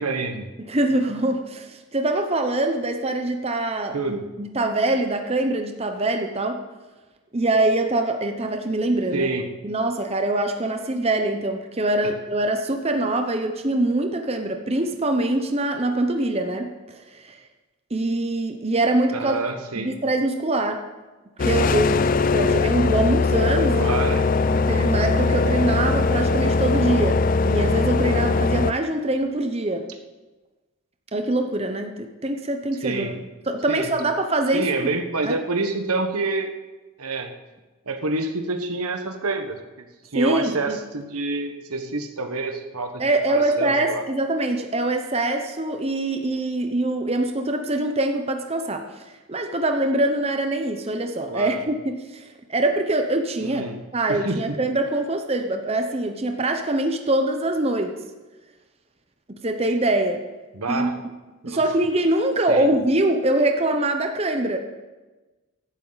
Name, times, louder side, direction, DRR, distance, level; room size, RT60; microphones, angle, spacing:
voice 1, 0.0-0.5 3.9-4.2 9.1-9.5 12.0-12.1 19.1-19.9 23.7-24.3 32.8-33.1 33.7-33.9 34.5-36.5 37.0-37.3 37.9-39.6 40.1-43.0 43.3-44.0 51.3-51.6 53.4-53.8 54.1-54.4 60.5-60.9 61.4-61.6 62.5-62.7, right 3 dB, 85° right, 6 dB, 1.2 m, -27 dB
voice 2, 0.6-6.6 7.3-9.3 9.6-17.4 17.9-19.4 19.8-20.8 21.4-24.0 24.5-29.9 31.1-33.1 33.5-34.9 35.2-35.4 40.1-40.8 43.0-48.8 49.3-53.6 53.9-57.9 59.3-60.2 60.7-60.9 61.5-64.6, right 2 dB, 25° right, 5 dB, 0.8 m, -24 dB
sound 1, 21.4-28.7, left 4 dB, 35° left, 0.4 m, -21 dB
15.5 x 11.5 x 4.0 m, 1.2 s
head